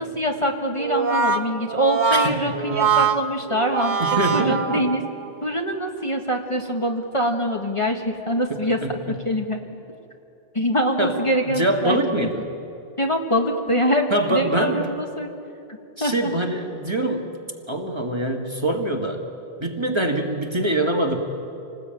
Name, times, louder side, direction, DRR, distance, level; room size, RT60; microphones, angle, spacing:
voice 1, 0.0-4.0 4.3-5.0 5.4-8.8 9.1-9.6 10.5-12.3 13.0-15.3 16.0-16.3, equal, 30° left, 2 dB, 1.5 m, -24 dB
Brass instrument, 0.8-5.3, right 5 dB, 50° right, 1.1 m, -23 dB
voice 2, 2.2-2.9 4.0-4.9 8.5-9.2 11.0-11.2 11.5-12.5 14.1-14.9 16.0-17.3 17.7-19.2 19.6-21.2, right 1 dB, 25° right, 2 dB, 1.8 m, -24 dB
27.0 x 19.5 x 9.0 m, 2.7 s
omnidirectional pair, 1.1 m